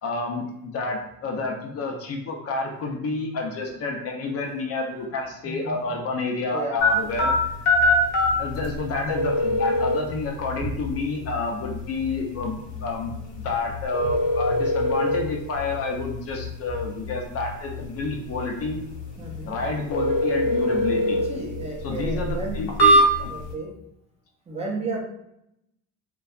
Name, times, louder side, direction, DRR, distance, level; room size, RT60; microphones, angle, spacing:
voice 1, 0.0-7.3 8.4-18.8 19.5-21.2 21.8-23.3, left 3 dB, 45° left, 2 dB, 0.4 m, -29 dB
voice 2, 5.4-5.8 6.5-6.8 10.6-10.7 14.0-14.1 19.2-19.5 21.3-22.7 23.3-23.7 24.5-25.0, right 3 dB, 20° right, -2 dB, 0.4 m, -32 dB
sound 1, 6.8-23.5, left 1 dB, 85° left, 0.8 m, -25 dB
2.6 x 2.2 x 2.3 m, 0.81 s
cardioid pair, 110°, 36 cm